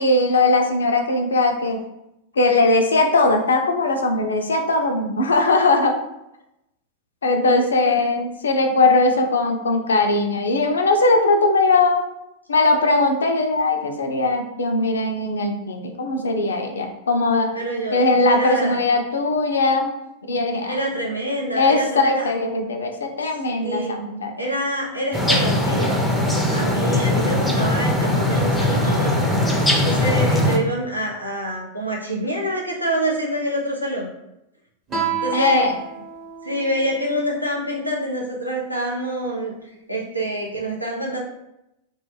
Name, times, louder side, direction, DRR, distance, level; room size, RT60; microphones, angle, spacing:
voice 1, 0.0-1.8 2.4-5.9 7.2-12.1 12.5-17.5 17.9-19.9 20.3-20.8 21.6-24.4 35.3-35.7, left 2 dB, 70° left, 4 dB, 0.4 m, -19 dB
voice 2, 17.5-18.8 20.7-22.3 23.6-24.0 24.4-26.0 26.5-29.3 29.8-34.1 35.2-35.6 36.4-39.5 39.9-41.2, right 1 dB, 90° right, -2 dB, 0.5 m, -26 dB
sound 1, 25.1-30.6, left 1 dB, 5° left, 0.5 m, -20 dB
Guitar, 34.9-38.1, right 7 dB, 30° right, 0.8 m, -31 dB
2.3 x 2.1 x 3.0 m, 0.87 s
figure-of-eight pair, 90°, 0 cm